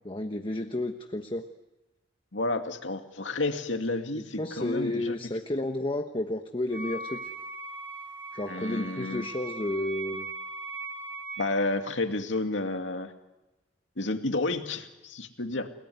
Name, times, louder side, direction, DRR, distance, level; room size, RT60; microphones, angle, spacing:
voice 1, 0.0-1.4 4.4-7.3 8.3-10.3, left 1 dB, 30° left, 5 dB, 1.2 m, -31 dB
voice 2, 2.3-5.2 8.5-9.3 11.4-13.1 14.0-15.7, left 2 dB, 80° left, 5 dB, 2.4 m, -31 dB
Wind instrument woodwind instrument, 6.7-11.6, right 2 dB, 10° right, 5.0 m, -39 dB
29.5 x 18.5 x 9.6 m, 1.0 s
head